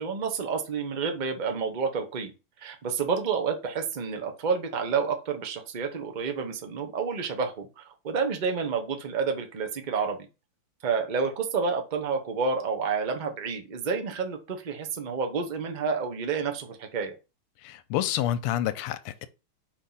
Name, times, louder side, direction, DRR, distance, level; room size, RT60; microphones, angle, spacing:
voice 1, 0.0-2.3 2.6-10.2 10.8-17.1, right 5 dB, 55° right, 0.5 m, -29 dB
voice 2, 17.6-19.3, left 12 dB, 90° left, 1.5 m, -28 dB
5.1 x 3.6 x 5.5 m
omnidirectional pair, 2.4 m